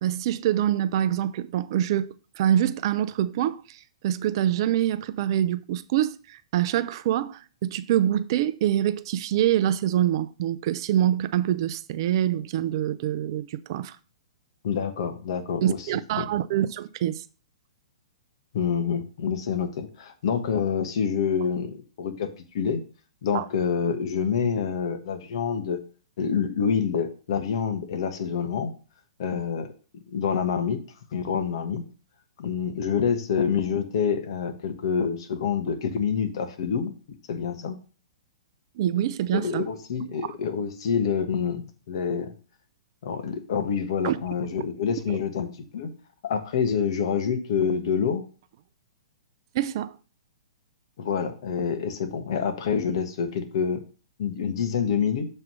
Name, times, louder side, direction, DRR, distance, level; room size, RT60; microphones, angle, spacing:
voice 1, 0.0-14.0 15.6-17.2 23.3-23.4 38.8-39.6 40.2-40.3 44.0-44.2 45.1-45.2 49.5-49.9, right 11 dB, 50° right, 0.5 m, -25 dB
voice 2, 14.6-15.9 16.2-16.3 18.5-22.8 23.2-25.8 26.2-28.7 29.2-29.7 30.1-30.8 31.1-31.8 32.4-36.9 37.3-37.8 39.3-42.3 43.0-45.5 45.7-45.9 46.2-48.2 51.0-53.8 54.2-55.3, left 7 dB, 60° left, 1.2 m, -27 dB
7.2 x 3.3 x 6.0 m
hypercardioid pair, 125°, 3 cm